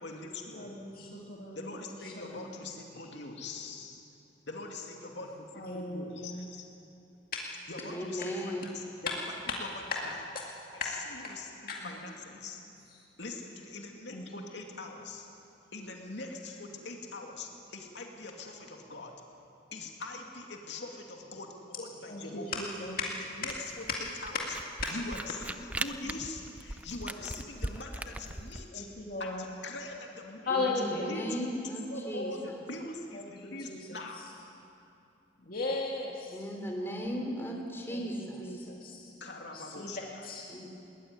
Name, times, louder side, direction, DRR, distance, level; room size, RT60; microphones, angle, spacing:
voice 1, 0.0-0.8 1.5-4.0 4.5-6.6 7.7-9.1 9.6-10.2 10.7-12.6 13.2-15.3 15.7-19.2 19.7-22.5 23.0-23.1 23.4-23.6 24.0-24.3 24.9-28.9 29.2-31.3 31.9-34.3 39.2-40.3, left 2 dB, 70° left, 1 dB, 2.5 m, -43 dB
voice 2, 0.6-2.6 3.0-3.1 5.5-6.4 7.3-7.5 9.1-9.2 9.5-9.6 10.3-10.5 10.8-10.9 11.7-11.9 14.1-14.2 22.1-23.1 26.1-26.2 28.7-29.5 30.5-31.1 33.1-34.0 35.4-36.4 36.8-37.5 37.9-39.1 39.5-40.5, left 3 dB, 50° left, -2 dB, 2.2 m, -37 dB
voice 3, 7.9-8.6 30.5-32.6 36.3-38.7 40.5-40.7, equal, 15° left, 1 dB, 3.3 m, -37 dB
Camera, 23.5-28.6, right 1 dB, 10° right, 0.5 m, -39 dB
21.0 x 19.0 x 9.6 m, 2.7 s
head